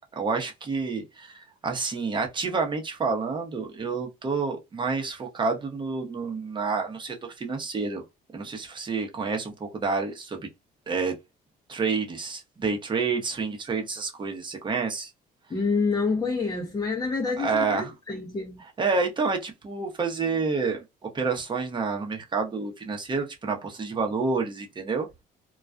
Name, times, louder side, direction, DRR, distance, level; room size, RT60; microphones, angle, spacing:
voice 1, 0.2-8.0 8.3-10.5 10.9-11.2 11.7-15.1 17.4-17.9 18.8-20.8 21.1-25.1, right 4 dB, 30° right, 0.8 m, -29 dB
voice 2, 15.5-18.6, left 4 dB, 20° left, 0.6 m, -27 dB
2.3 x 2.2 x 2.4 m
cardioid pair, 110°, 17 cm